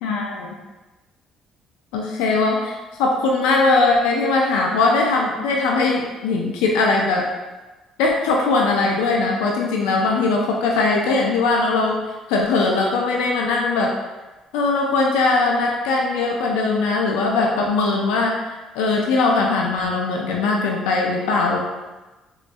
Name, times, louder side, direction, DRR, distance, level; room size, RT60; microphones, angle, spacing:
voice 1, 0.0-0.5 1.9-7.2 8.0-12.0 12.3-13.9 14.5-18.4 18.7-21.6, left 3 dB, 90° left, -1 dB, 0.4 m, -20 dB
3.0 x 2.2 x 2.5 m, 1.1 s
supercardioid pair, 80°, 0 cm